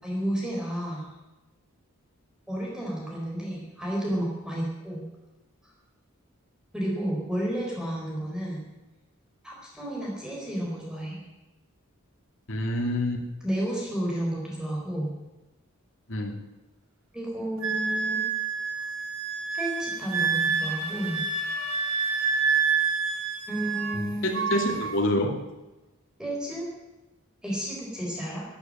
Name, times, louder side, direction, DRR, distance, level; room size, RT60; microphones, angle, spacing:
voice 1, 0.0-1.1 2.5-5.1 6.7-8.6 9.4-11.2 13.4-15.1 17.1-18.2 19.5-21.3 23.5-24.6 26.2-26.7 27.4-28.4, right 1 dB, 5° right, -3 dB, 4.5 m, -31 dB
voice 2, 12.5-13.2 16.1-16.4 23.9-25.4, left 1 dB, 60° left, 1 dB, 2.8 m, -27 dB
Wind instrument woodwind instrument, 17.6-24.0 24.3-25.0, right 5 dB, 65° right, 2.3 m, -28 dB
13.0 x 10.0 x 9.2 m, 1.0 s
head